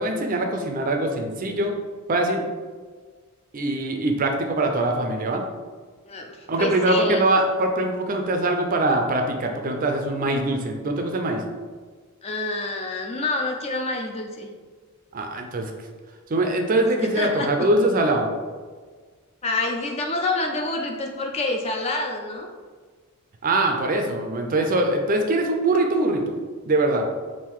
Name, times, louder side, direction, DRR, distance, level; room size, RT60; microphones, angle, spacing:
voice 1, 0.0-1.7 2.1-2.4 3.5-5.4 6.5-11.4 15.1-15.7 16.3-18.3 23.4-26.4 26.7-27.1, right 2 dB, 40° right, 4 dB, 0.4 m, -22 dB
voice 2, 6.1-7.2 12.2-14.5 17.0-17.5 19.4-22.5, left 2 dB, 30° left, 2 dB, 0.4 m, -27 dB
3.6 x 2.5 x 4.6 m, 1.5 s
head